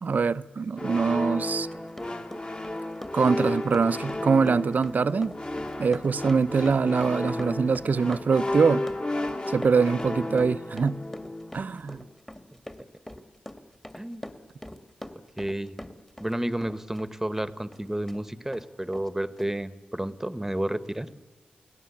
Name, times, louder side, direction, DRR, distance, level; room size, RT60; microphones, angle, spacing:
voice 1, 0.0-1.7 3.1-5.3 5.8-8.9 9.5-11.0 11.5-12.0, right 5 dB, 60° right, 0.7 m, -23 dB
sound 1, 0.8-11.7, left 1 dB, 35° left, 2.6 m, -33 dB
Run, 1.5-16.4 16.6-18.2 18.5-18.6 18.9-19.1 19.4-19.5, left 1 dB, 10° left, 1.9 m, -43 dB
voice 2, 13.9-14.3 15.4-15.7 16.2-21.1, right 1 dB, 10° right, 1.3 m, -31 dB
28.5 x 18.0 x 8.5 m
cardioid pair, 70°, 3 cm